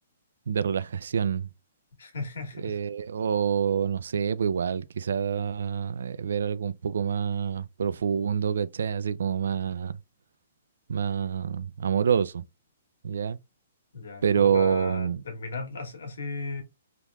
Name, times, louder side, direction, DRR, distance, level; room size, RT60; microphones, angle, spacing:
voice 1, 0.5-1.5 2.6-10.0 10.9-12.4 13.0-13.4 14.2-15.2, right 7 dB, 75° right, 0.4 m, -27 dB
voice 2, 2.0-2.8 13.9-16.6, left 3 dB, 80° left, 1.7 m, -36 dB
3.5 x 2.9 x 2.3 m
hypercardioid pair, 170°, 0 cm